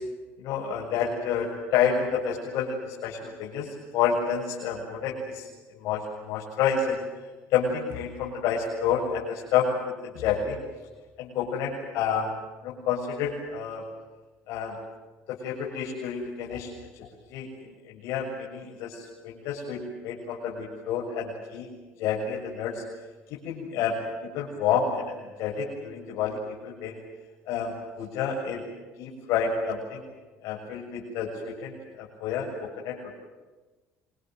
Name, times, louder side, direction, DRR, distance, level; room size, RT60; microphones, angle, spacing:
voice 1, 0.4-7.0 7.5-9.7 10.1-10.6 11.2-12.3 12.6-13.8 14.5-14.7 15.3-16.9 17.3-21.7 22.0-22.8 23.3-24.0 24.2-27.0 27.5-28.6 29.0-30.0 30.4-32.5 32.8-33.1, left 7 dB, 75° left, -3 dB, 7.4 m, -29 dB
27.5 x 25.5 x 7.8 m, 1.3 s
cardioid pair, 130°, 5 cm